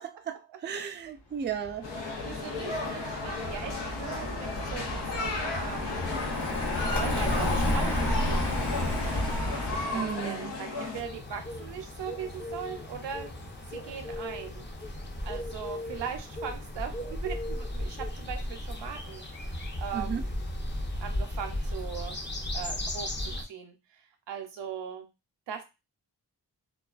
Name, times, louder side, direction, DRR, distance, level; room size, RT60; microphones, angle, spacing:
voice 1, 0.0-1.9 9.9-10.6 19.9-20.2, right 8 dB, 30° right, 0.3 m, -35 dB
Car passing by, 1.6-10.2, left 1 dB, 75° left, 1.1 m, -31 dB
sound 1, 1.8-11.0, left 3 dB, 90° left, 0.7 m, -35 dB
voice 2, 2.2-6.3 6.9-9.0 9.5-13.4 13.7-14.7 15.2-19.3 19.8-20.5 21.0-22.2 22.5-23.8 24.3-25.1 25.5-25.6, right 8 dB, 85° right, 0.6 m, -40 dB
sound 2, 10.9-23.4, left 1 dB, 25° left, 0.6 m, -36 dB
2.3 x 2.3 x 2.3 m
cardioid pair, 45°, 42 cm